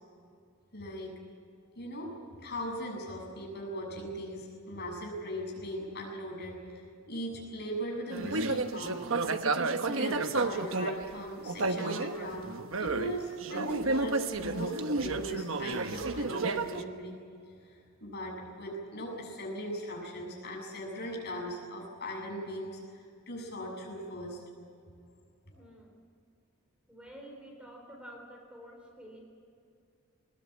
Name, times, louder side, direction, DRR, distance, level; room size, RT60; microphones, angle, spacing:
voice 1, 0.7-1.1 1.8-9.0 9.9-12.5 12.8-24.4 25.5-25.6, equal, 50° left, -1 dB, 7.4 m, -39 dB
sound 1, 8.1-11.1 11.5-13.1 13.4-16.8, right 3 dB, 70° right, 1.1 m, -31 dB
voice 2, 25.5-26.0 26.9-29.2, equal, 5° right, 0 dB, 3.7 m, -49 dB
21.0 x 20.5 x 8.7 m, 2.3 s
head